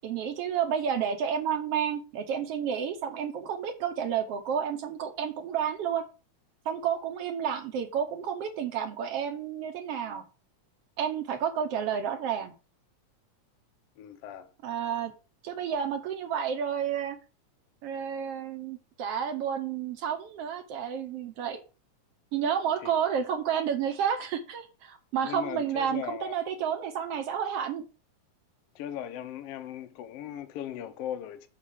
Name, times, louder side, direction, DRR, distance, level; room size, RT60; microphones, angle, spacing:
voice 1, 0.0-6.0 6.6-10.2 11.0-12.5 14.6-15.1 15.4-17.2 17.8-21.6 22.3-27.8, right 8 dB, 70° right, 1.5 m, -30 dB
voice 2, 14.0-14.5 22.8-22.9 25.2-26.4 28.7-31.5, left 10 dB, 70° left, 1.4 m, -38 dB
7.2 x 4.2 x 6.5 m
omnidirectional pair, 3.6 m